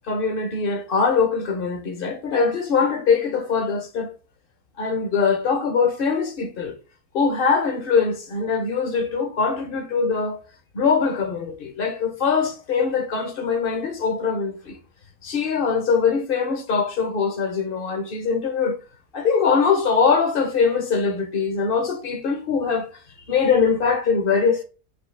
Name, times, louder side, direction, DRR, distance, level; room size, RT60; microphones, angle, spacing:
voice 1, 0.1-4.1 4.8-6.7 7.1-10.4 10.7-14.8 15.2-18.8 19.1-22.9 23.3-24.6, left 5 dB, 50° left, 0.7 m, -22 dB
4.7 x 2.8 x 3.2 m
omnidirectional pair, 1.6 m